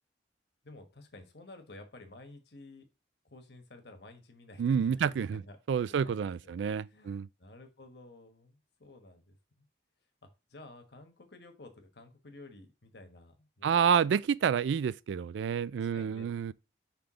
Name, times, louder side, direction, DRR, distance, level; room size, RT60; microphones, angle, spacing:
voice 1, 0.6-2.9 3.3-5.6 5.9-6.5 6.9-9.6 10.2-13.9 15.8-16.5, left 2 dB, 65° left, 1.2 m, -53 dB
voice 2, 4.6-5.4 5.7-7.3 13.6-16.5, right 7 dB, 80° right, 0.3 m, -29 dB
5.8 x 3.4 x 4.9 m
head